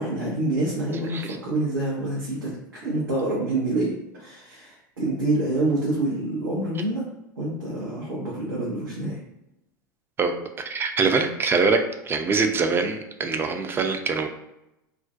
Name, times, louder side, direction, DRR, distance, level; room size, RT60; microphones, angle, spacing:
voice 1, 0.0-2.5 2.8-7.1 7.4-9.2, right 2 dB, 90° right, -7 dB, 0.7 m, -27 dB
voice 2, 10.7-14.3, right 4 dB, 20° right, 6 dB, 0.3 m, -23 dB
2.4 x 2.1 x 2.4 m, 0.90 s
hypercardioid pair, 90°, 11 cm